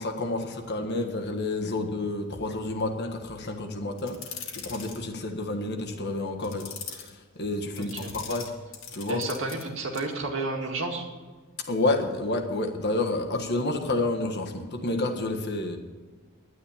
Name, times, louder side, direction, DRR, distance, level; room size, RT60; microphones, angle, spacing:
voice 1, 0.0-7.1 7.3-8.5 8.9-9.2 11.7-15.8, left 2 dB, 55° left, 3 dB, 1.6 m, -29 dB
sound 1, 4.0-5.0 6.4-7.1 7.8-9.6 9.9-10.1, left 7 dB, 75° left, 2.1 m, -40 dB
voice 2, 7.8-8.1 9.1-11.1, right 2 dB, 65° right, 2 dB, 2.1 m, -31 dB
11.0 x 9.9 x 7.3 m, 1.4 s
head